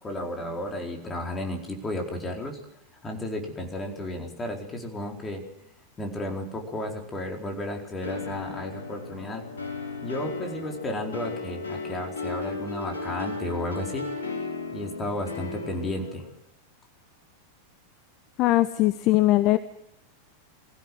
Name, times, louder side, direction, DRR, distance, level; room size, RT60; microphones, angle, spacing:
voice 1, 0.0-2.6 3.0-5.4 6.0-9.4 10.0-14.3 14.7-16.3, left 1 dB, 15° left, 2 dB, 4.5 m, -33 dB
sound 1, 8.0-16.3, left 3 dB, 70° left, 5.0 m, -35 dB
voice 2, 18.4-19.6, left 16 dB, 40° left, 14 dB, 0.9 m, -20 dB
22.5 x 16.0 x 7.8 m, 0.82 s
figure-of-eight pair, 90°, 0 cm